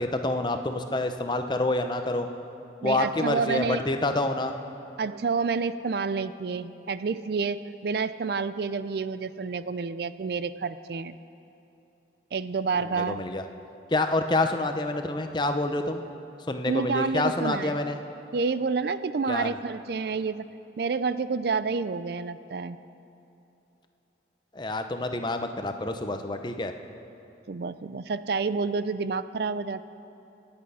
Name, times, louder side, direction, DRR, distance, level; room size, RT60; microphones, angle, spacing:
voice 1, 0.0-2.3 2.8-4.5 12.9-13.4 13.9-16.0 16.5-18.0 19.3-19.6 24.5-26.7, left 2 dB, 25° left, 6 dB, 0.7 m, -27 dB
voice 2, 2.8-3.8 5.0-11.2 12.3-13.2 16.7-17.8 18.3-20.5 20.8-22.8 27.5-29.8, right 4 dB, 60° right, 13 dB, 0.4 m, -29 dB
25.0 x 8.8 x 5.6 m, 2.8 s
head